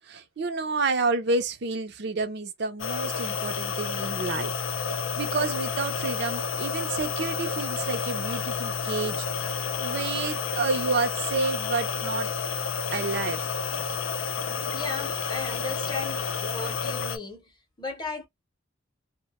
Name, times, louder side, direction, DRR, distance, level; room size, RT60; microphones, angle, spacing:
voice 1, 0.1-4.5 5.2-9.3 9.8-12.3 12.9-13.5, right 3 dB, 55° right, 0.5 m, -29 dB
sound 1, 2.8-17.2, left 5 dB, 70° left, 0.4 m, -30 dB
voice 2, 14.7-18.3, left 3 dB, 20° left, 0.6 m, -36 dB
2.1 x 2.1 x 2.8 m
head